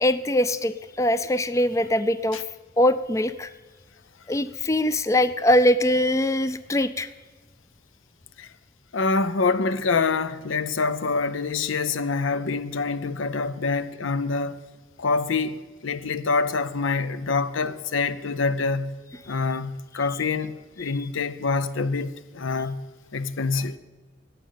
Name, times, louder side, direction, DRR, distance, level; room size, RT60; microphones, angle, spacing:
voice 1, 0.0-2.4 2.8-3.5 4.3-7.1, left 1 dB, 15° left, 0.4 m, -22 dB
voice 2, 8.9-14.6 15.0-18.9 19.3-22.8 23.1-23.8, left 4 dB, 85° left, 0.7 m, -26 dB
11.5 x 7.7 x 9.3 m
head